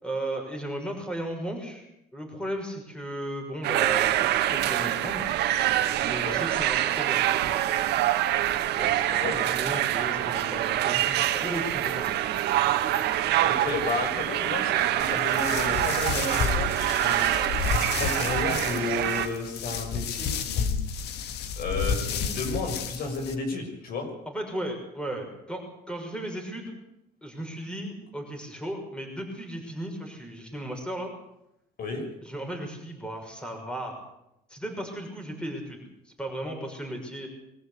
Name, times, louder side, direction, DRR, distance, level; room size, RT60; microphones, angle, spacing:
voice 1, 0.0-1.8 2.1-5.3 6.0-7.2 7.5-7.6 8.8-12.2 24.3-26.8 27.2-31.1 32.2-34.0 34.5-37.3, right 1 dB, 5° left, 2 dB, 6.3 m, -35 dB
sound 1, 3.6-19.3, right 13 dB, 80° right, 1.7 m, -25 dB
voice 2, 13.4-20.7 21.6-24.1 31.8-32.0, left 3 dB, 60° left, 3 dB, 6.9 m, -33 dB
sound 2, 15.0-23.3, left 6 dB, 80° left, 1.9 m, -31 dB
23.5 x 14.5 x 8.5 m, 0.82 s
cardioid pair, 110°, 17 cm